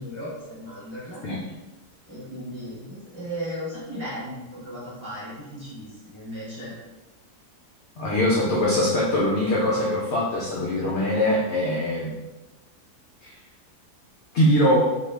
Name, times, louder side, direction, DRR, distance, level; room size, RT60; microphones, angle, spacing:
voice 1, 0.0-1.2 2.1-6.7, equal, 25° right, -9 dB, 0.8 m, -36 dB
voice 2, 8.0-12.1 13.2-13.3 14.3-14.8, left 1 dB, 70° left, -5 dB, 0.6 m, -22 dB
2.8 x 2.3 x 3.2 m, 1.1 s
omnidirectional pair, 1.7 m